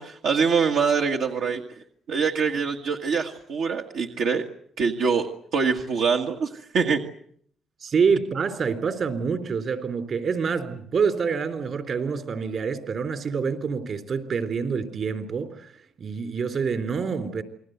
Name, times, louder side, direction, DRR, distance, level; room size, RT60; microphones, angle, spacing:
voice 1, 0.0-1.6 2.1-4.4 4.8-7.0, right 5 dB, 80° right, 1.8 m, -24 dB
voice 2, 7.8-15.7 16.0-17.4, right 5 dB, 55° right, 3.8 m, -26 dB
28.5 x 21.0 x 8.1 m
cardioid pair, 90°, 0 cm